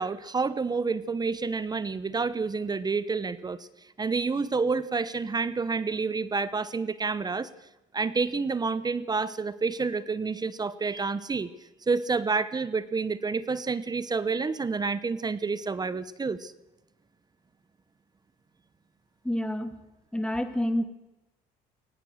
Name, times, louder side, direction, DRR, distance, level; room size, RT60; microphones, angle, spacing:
voice 1, 0.0-3.6 4.0-7.5 7.9-11.5 11.9-16.5, right 4 dB, 25° right, 17 dB, 0.9 m, -29 dB
voice 2, 19.2-19.8 20.1-20.8, left 1 dB, 5° left, 8 dB, 2.6 m, -28 dB
21.5 x 20.0 x 6.5 m, 0.99 s
cardioid pair, 110°, 17 cm